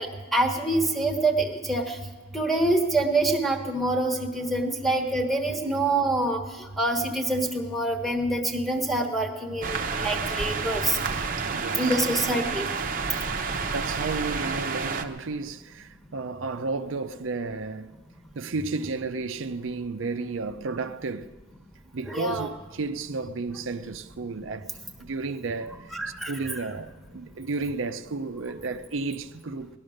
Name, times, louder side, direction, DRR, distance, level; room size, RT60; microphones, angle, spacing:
voice 1, 0.0-2.0 2.3-6.4 6.8-11.0 11.7-12.7 22.0-22.5 25.9-26.6, right 2 dB, ahead, 1.3 m, -26 dB
sound 1, 9.6-15.1, right 5 dB, 45° right, 0.8 m, -29 dB
voice 2, 11.4-12.0 13.7-17.9 18.3-21.3 21.9-24.7 25.0-25.8 26.3-29.7, right 3 dB, 80° right, 0.6 m, -32 dB
18.5 x 12.0 x 6.5 m
head